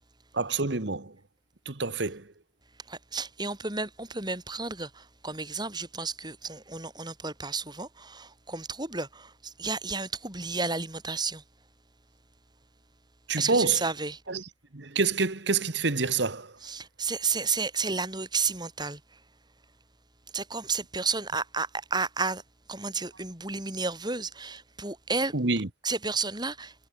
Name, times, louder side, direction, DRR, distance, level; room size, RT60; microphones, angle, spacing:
voice 1, 0.3-1.2 1.6-2.3 13.3-13.8 14.3-16.6 25.3-25.7, right 4 dB, 65° right, 1.5 m, -27 dB
voice 2, 2.9-11.4 13.4-14.2 16.6-19.2 20.3-22.4 22.7-25.3 25.8-26.8, right 4 dB, 20° right, 7.7 m, -32 dB
head